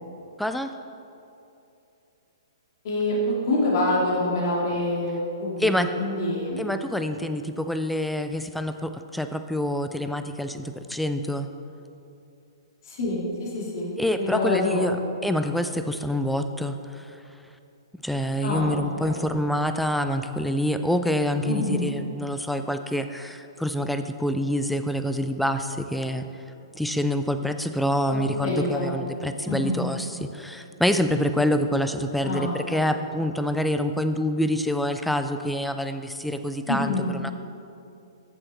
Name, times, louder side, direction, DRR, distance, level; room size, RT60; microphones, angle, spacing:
voice 1, 0.4-0.7 5.6-5.9 6.6-11.5 14.0-15.0 15.2-17.2 18.0-26.4 26.7-37.3, left 1 dB, ahead, 8 dB, 0.4 m, -26 dB
voice 2, 2.8-5.7 6.0-6.6 12.8-13.9 14.2-15.0 18.4-19.3 21.4-21.9 28.1-29.0 29.5-29.8 32.2-32.9 36.7-37.1, left 1 dB, 50° left, -4 dB, 2.2 m, -26 dB
14.0 x 6.2 x 3.3 m, 2.8 s
figure-of-eight pair, 120°, 3 cm